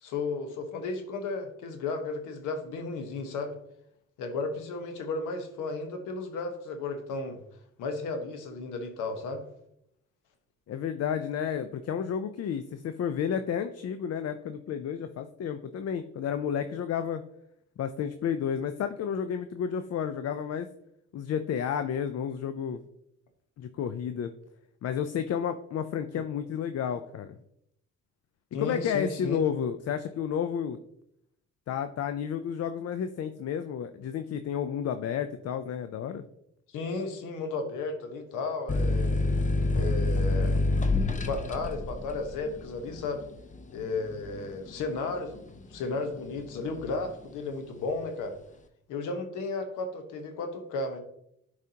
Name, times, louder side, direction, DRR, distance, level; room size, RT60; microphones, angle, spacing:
voice 1, 0.0-3.5 4.2-7.4 7.8-9.4 26.1-26.2 28.5-29.4 36.7-39.2 39.7-40.6 41.2-43.2 43.7-45.4 45.7-48.4 48.9-51.0, left 3 dB, 90° left, 6 dB, 1.2 m, -34 dB
voice 2, 10.7-17.2 17.8-20.7 21.1-22.8 23.6-24.3 24.8-27.4 28.6-30.8 31.7-36.2, left 8 dB, 55° left, 10 dB, 0.5 m, -31 dB
sound 1, 38.7-46.0 46.4-47.1, left 2 dB, 25° left, 0.8 m, -28 dB
11.0 x 4.9 x 2.8 m, 0.76 s
cardioid pair, 90°, 30 cm